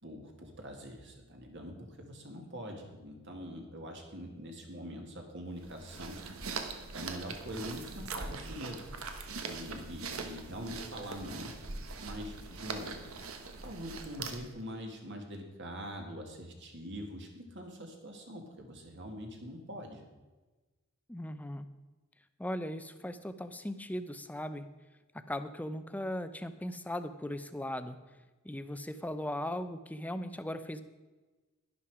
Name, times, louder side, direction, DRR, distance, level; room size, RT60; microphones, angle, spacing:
voice 1, 0.0-6.2 6.9-8.9 9.5-11.5 12.0-12.9 13.5-20.0, equal, 55° right, 2 dB, 2.2 m, -43 dB
sound 1, 5.6-14.6, right 4 dB, 80° right, 1.2 m, -42 dB
voice 2, 21.1-21.7 22.4-24.6 25.1-28.0 28.4-30.8, left 1 dB, 5° left, 11 dB, 0.5 m, -38 dB
11.5 x 11.0 x 4.9 m, 1.2 s
head